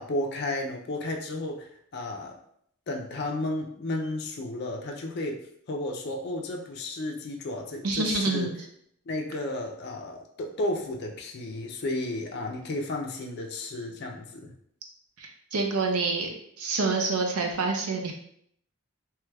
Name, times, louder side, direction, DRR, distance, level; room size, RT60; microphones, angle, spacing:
voice 1, 0.0-2.4 2.9-8.5 9.1-14.5, left 2 dB, 45° left, 1 dB, 0.4 m, -33 dB
voice 2, 7.8-8.5 15.2-16.3 16.6-18.1, right 3 dB, 80° right, 2 dB, 0.6 m, -27 dB
3.2 x 3.0 x 2.3 m, 0.67 s
head